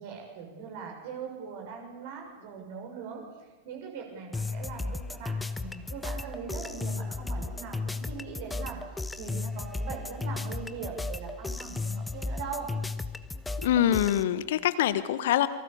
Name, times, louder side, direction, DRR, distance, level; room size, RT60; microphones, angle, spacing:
voice 1, 0.0-3.2 3.6-8.9 9.2-12.7, right 6 dB, 50° right, 2 dB, 6.6 m, -41 dB
sound 1, 4.3-14.2, left 3 dB, 10° left, 1.1 m, -35 dB
voice 2, 13.6-15.5, left 11 dB, 55° left, 14 dB, 1.2 m, -24 dB
28.5 x 24.0 x 7.0 m, 1.2 s
figure-of-eight pair, 90°, 0 cm